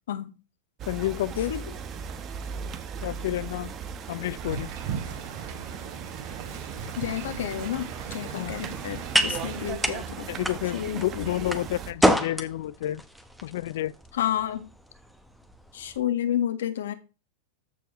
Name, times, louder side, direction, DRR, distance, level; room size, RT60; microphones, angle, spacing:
sound 1, 0.8-11.9, right 6 dB, 30° right, 1.0 m, -38 dB
voice 1, 0.9-1.5 3.0-3.7 4.1-4.7 8.3-8.5 9.2-9.3 10.3-13.0 13.4-13.9, left 14 dB, 70° left, 0.4 m, -30 dB
Wind, 4.4-9.7, right 7 dB, 50° right, 3.1 m, -38 dB
voice 2, 7.0-10.3 10.7-11.5 14.1-14.7 15.7-16.9, left 11 dB, 85° left, 1.5 m, -30 dB
sound 2, 8.0-16.0, equal, ahead, 1.0 m, -30 dB
14.0 x 4.7 x 3.1 m
supercardioid pair, 145°, 0 cm